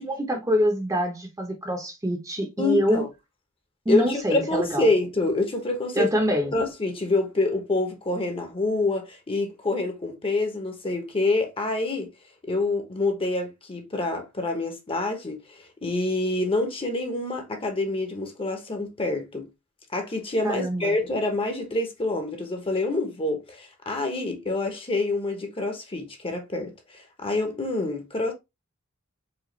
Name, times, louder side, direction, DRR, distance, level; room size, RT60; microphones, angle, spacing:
voice 1, 0.0-3.0 3.9-4.9 6.0-6.5 20.4-20.9, equal, 15° right, 0.8 m, -25 dB
voice 2, 2.6-3.1 3.9-6.1 6.5-12.1 12.4-19.5 19.9-28.3, left 2 dB, 25° left, 0.9 m, -27 dB
4.9 x 2.5 x 3.0 m
head